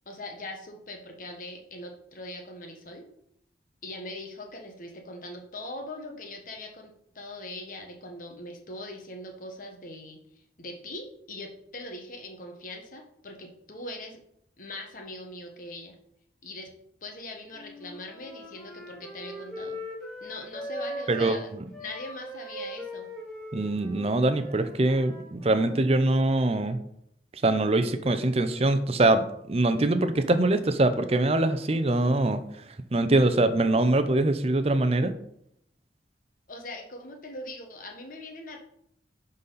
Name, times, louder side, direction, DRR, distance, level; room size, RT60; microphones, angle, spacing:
voice 1, 0.0-3.0 3.8-10.2 10.6-14.2 14.6-16.0 16.4-16.7 17.0-19.8 20.2-21.5 21.8-23.1 36.5-38.6, left 1 dB, 50° left, 3 dB, 1.3 m, -41 dB
Wind instrument woodwind instrument, 17.5-21.4 21.7-26.0, equal, 5° left, 2.0 m, -40 dB
voice 2, 21.1-21.7 23.5-26.8 27.4-32.4 32.9-35.1, right 2 dB, 35° right, 10 dB, 0.6 m, -23 dB
10.5 x 4.1 x 4.0 m, 0.73 s
head